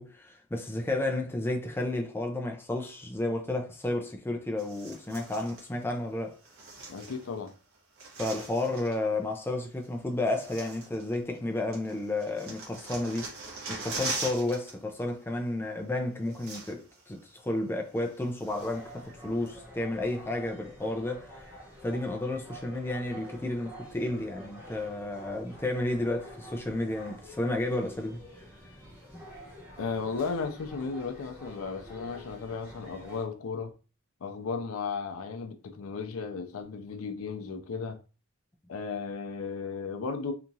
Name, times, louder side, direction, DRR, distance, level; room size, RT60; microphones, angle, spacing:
voice 1, 0.0-6.4 8.2-13.3 13.7-21.3 21.8-28.2 29.1-29.2, left 2 dB, 10° left, 0.3 m, -32 dB
sound 1, 4.6-5.6 6.4-7.5 7.7-9.0 9.8-9.9 10.3-11.4 11.7-14.7 15.0-15.2 15.9-16.0 16.2-17.0 17.4-17.5 18.0-18.9 19.4-19.5, right 3 dB, 70° right, 1.0 m, -41 dB
voice 2, 6.9-7.5 29.8-33.7 34.2-38.0 38.7-40.3, left 5 dB, 80° left, 0.4 m, -35 dB
sound 2, 18.5-33.2, equal, 10° right, 0.9 m, -48 dB
2.9 x 2.3 x 2.6 m
head